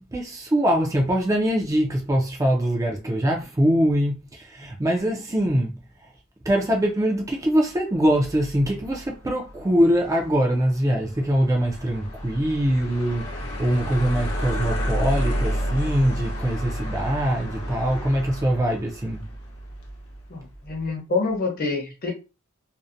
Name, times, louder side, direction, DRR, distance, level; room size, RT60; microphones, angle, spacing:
voice 1, 0.0-5.7 6.5-19.2, equal, 15° right, 0.4 m, -23 dB
sound 1, 8.1-20.2, equal, 75° left, 0.7 m, -31 dB
voice 2, 20.3-22.1, left 3 dB, 45° left, 0.8 m, -27 dB
2.6 x 2.0 x 2.5 m
head